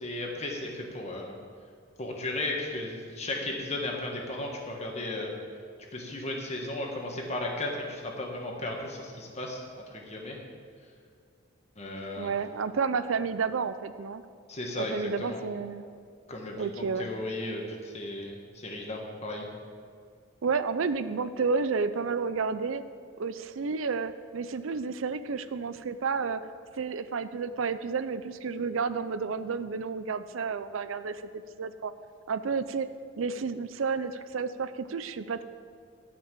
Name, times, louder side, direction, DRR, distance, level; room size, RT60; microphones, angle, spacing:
voice 1, 0.0-1.4 2.0-5.3 5.9-10.4 11.7-12.3 14.5-15.4 16.3-19.5, left 2 dB, 35° left, 0 dB, 1.6 m, -35 dB
voice 2, 12.2-14.2 14.8-15.9 16.6-17.1 20.4-22.8 23.2-26.4 26.8-31.9 32.3-32.9 33.2-35.4, right 5 dB, 85° right, 13 dB, 0.5 m, -31 dB
12.0 x 5.9 x 7.5 m, 2.2 s
head